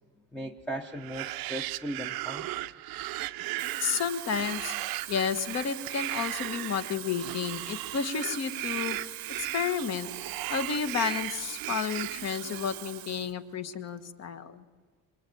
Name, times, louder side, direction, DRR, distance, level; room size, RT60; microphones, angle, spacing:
voice 1, 0.3-2.5, right 1 dB, 5° left, 4 dB, 0.7 m, -37 dB
sound 1, 0.9-12.9, right 17 dB, 85° right, 0.8 m, -37 dB
Water tap faucet / Fill (with liquid), 3.4-13.4 13.7-14.0, right 14 dB, 55° right, 0.8 m, -42 dB
voice 2, 3.8-4.7 5.1-9.0 9.4-10.1 10.5-14.6, left 7 dB, 45° left, 10 dB, 1.4 m, -31 dB
26.5 x 23.0 x 9.3 m, 1.4 s
cardioid pair, 175°, 35 cm